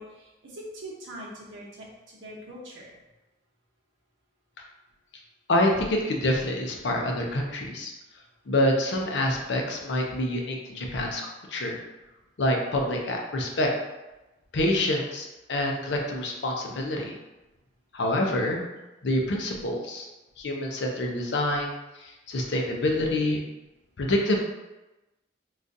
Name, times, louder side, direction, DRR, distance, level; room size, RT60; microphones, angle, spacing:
voice 1, 0.0-3.0, equal, 90° right, -4 dB, 0.8 m, -42 dB
voice 2, 5.5-7.9 8.5-11.8 12.4-13.7 14.5-17.1 17.9-18.6 19.0-20.1 20.4-21.7 22.0-23.4 24.0-24.4, left 1 dB, 70° left, 1 dB, 0.5 m, -26 dB
3.8 x 2.3 x 2.6 m, 1.0 s
head